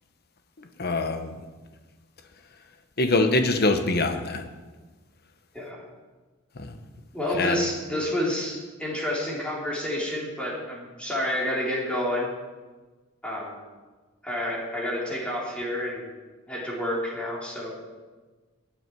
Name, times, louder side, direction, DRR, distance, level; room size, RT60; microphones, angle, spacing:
voice 1, 0.6-1.4 3.0-4.4 6.6-6.8 7.3-7.6, left 2 dB, 50° left, 7 dB, 1.1 m, -24 dB
voice 2, 7.1-12.3 13.2-13.5 14.2-16.1 16.5-17.7, left 1 dB, 5° left, -5 dB, 3.6 m, -29 dB
20.0 x 9.0 x 4.7 m, 1.3 s
head